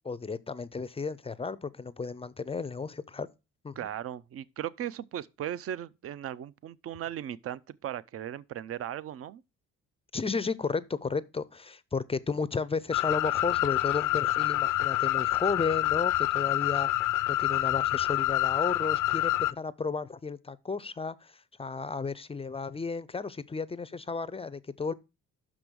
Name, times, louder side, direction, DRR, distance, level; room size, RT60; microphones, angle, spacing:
voice 1, 0.0-3.3 3.6-3.9 10.1-16.9 17.3-21.3 21.6-24.9, left 4 dB, 20° left, 0.4 m, -33 dB
voice 2, 3.8-9.4, right 11 dB, 50° right, 0.5 m, -37 dB
sound 1, 12.9-19.5, left 15 dB, 80° left, 0.5 m, -27 dB
6.1 x 5.1 x 6.1 m
cardioid pair, 90°, 30 cm